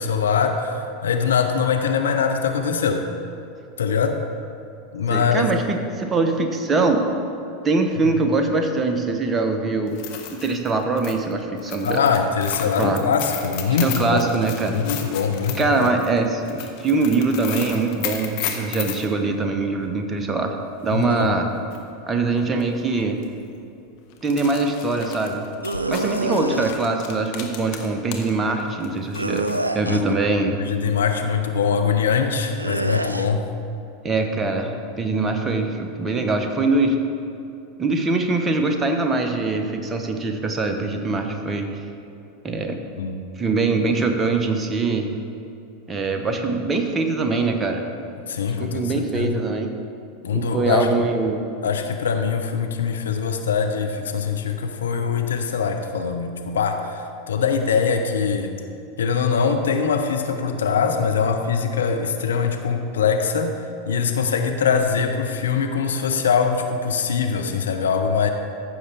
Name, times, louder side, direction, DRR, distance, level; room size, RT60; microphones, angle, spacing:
voice 1, 0.0-3.1 3.8-4.2 4.9-5.5 8.1-8.2 11.8-14.3 14.7-15.8 20.9-21.3 29.8-30.0 30.6-33.4 43.0-43.2 48.3-49.3 50.2-50.9 51.6-58.5 59.0-68.3, left 6 dB, 70° left, 5 dB, 0.7 m, -22 dB
voice 2, 5.1-7.0 7.6-10.0 10.3-12.0 12.8-13.0 13.8-14.8 15.6-20.6 20.8-21.5 22.1-23.2 24.2-25.5 25.9-29.5 29.7-30.5 34.0-37.0 37.8-41.7 42.4-42.8 43.4-45.1 45.9-47.8 48.6-49.7 50.3-51.4, right 3 dB, 20° right, 4 dB, 1.0 m, -23 dB
sound 1, 9.9-19.1 21.2-21.3 21.7-21.8 22.6-22.8 23.1-23.2 24.1-28.3 28.6-29.7, left 10 dB, 50° left, 1.1 m, -34 dB
sound 2, 25.6-26.7 29.1-30.2 32.6-33.3, right 2 dB, 90° right, 0.3 m, -26 dB
14.5 x 6.6 x 3.5 m, 2.6 s
figure-of-eight pair, 85°, 0 cm